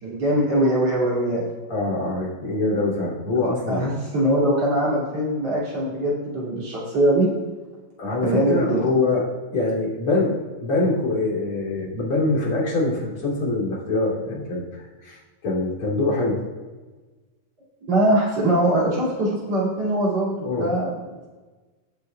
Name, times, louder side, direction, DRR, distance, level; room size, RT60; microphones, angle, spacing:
voice 1, 0.0-1.5 3.3-7.3 8.2-8.8 17.9-20.9, right 1 dB, 50° right, -6 dB, 3.5 m, -22 dB
voice 2, 1.7-3.9 8.0-9.3 9.5-15.2 15.4-16.4 20.4-20.7, left 2 dB, 40° left, -6 dB, 3.6 m, -24 dB
19.0 x 6.8 x 2.3 m, 1.3 s
omnidirectional pair, 4.0 m